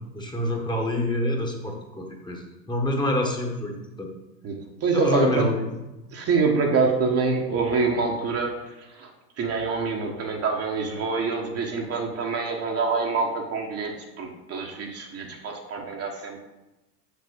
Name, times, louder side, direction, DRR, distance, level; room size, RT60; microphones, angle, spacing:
voice 1, 0.1-4.1 4.9-5.6, left 1 dB, 10° left, 1 dB, 1.4 m, -27 dB
voice 2, 4.4-5.5 6.1-9.1 9.4-16.4, right 4 dB, 30° right, 1 dB, 1.3 m, -26 dB
6.9 x 6.6 x 5.4 m, 0.99 s
hypercardioid pair, 95°, 48 cm